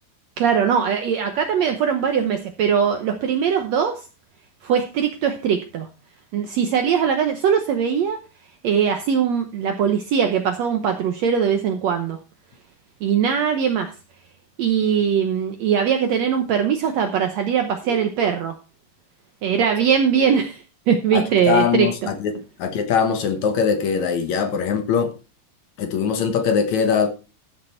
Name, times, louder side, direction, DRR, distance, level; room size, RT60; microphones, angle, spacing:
voice 1, 0.4-4.0 4.6-5.9 6.3-8.2 8.6-12.2 13.0-13.9 14.6-18.5 19.4-22.1, right 7 dB, 65° right, 1.8 m, -21 dB
voice 2, 21.1-25.1 25.8-27.1, left 6 dB, 65° left, 2.3 m, -22 dB
13.5 x 6.7 x 4.4 m
omnidirectional pair, 3.9 m